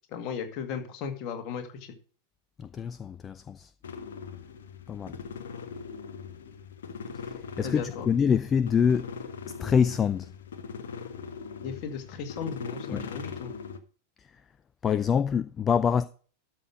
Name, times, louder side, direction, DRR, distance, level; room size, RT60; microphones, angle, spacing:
voice 1, 0.1-1.7 7.6-8.1 11.6-13.5, left 6 dB, 40° left, 2.0 m, -36 dB
voice 2, 2.6-3.7 4.9-5.2 7.6-9.1 9.5-10.3 12.9-13.1 14.8-16.1, left 7 dB, 20° left, 0.4 m, -25 dB
sound 1, 3.8-13.8, left 6 dB, 60° left, 1.1 m, -40 dB
12.5 x 6.0 x 5.0 m
figure-of-eight pair, 90°, 0 cm